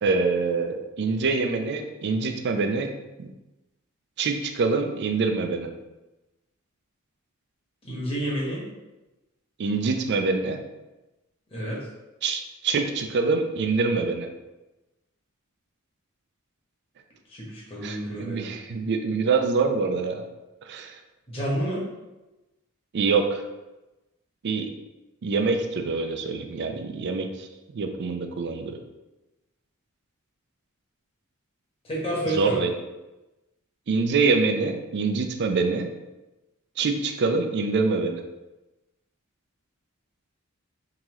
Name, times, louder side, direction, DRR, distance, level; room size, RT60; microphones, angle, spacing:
voice 1, 0.0-2.9 3.2-3.3 4.2-5.7 9.6-10.6 12.2-14.3 17.8-20.2 20.6-21.0 22.9-23.4 24.4-24.7 25.2-27.5 27.7-28.8 32.2-32.7 33.9-35.9 36.8-38.2, right 4 dB, 50° right, 5 dB, 0.4 m, -25 dB
voice 2, 7.8-8.6 11.5-11.8 17.3-18.5 21.3-21.8 31.8-32.6, right 1 dB, 25° left, -6 dB, 1.2 m, -29 dB
3.8 x 2.8 x 3.0 m, 1.1 s
head